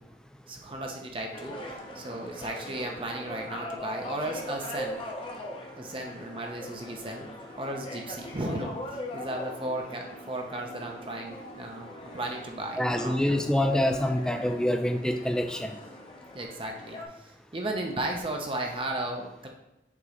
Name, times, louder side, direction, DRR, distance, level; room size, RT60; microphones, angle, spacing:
voice 1, 0.5-1.6 1.9-5.0 5.8-7.3 7.6-8.7 9.1-13.1 16.3-19.5, right 1 dB, 30° right, 1 dB, 0.7 m, -35 dB
sound 1, 1.3-17.1, left 1 dB, 30° left, 0.7 m, -41 dB
voice 2, 12.8-15.8, left 1 dB, 5° left, 5 dB, 0.4 m, -26 dB
6.8 x 3.1 x 4.9 m, 0.91 s
head